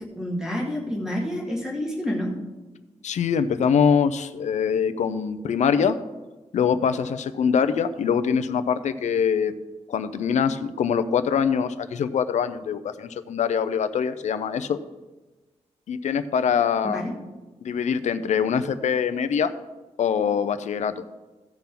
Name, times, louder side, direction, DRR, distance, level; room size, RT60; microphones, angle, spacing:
voice 1, 0.2-2.3 16.8-17.1, left 1 dB, 5° right, -3 dB, 2.1 m, -28 dB
voice 2, 3.0-6.0 6.5-9.5 9.9-14.8 15.9-17.0 17.6-19.5 20.0-21.0, left 7 dB, 85° left, 10 dB, 0.6 m, -23 dB
16.0 x 5.8 x 3.9 m, 1.2 s
wide cardioid pair, 170°, 12 cm